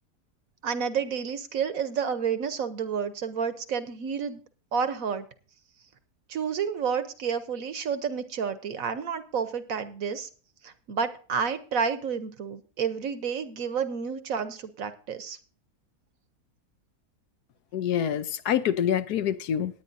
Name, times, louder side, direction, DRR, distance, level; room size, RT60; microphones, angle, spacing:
voice 1, 0.6-4.4 4.7-5.3 6.3-10.3 10.6-15.4, right 6 dB, 60° right, 11 dB, 1.2 m, -30 dB
voice 2, 17.7-19.8, left 9 dB, 70° left, 12 dB, 1.2 m, -26 dB
19.5 x 9.2 x 2.6 m, 0.39 s
omnidirectional pair, 1.8 m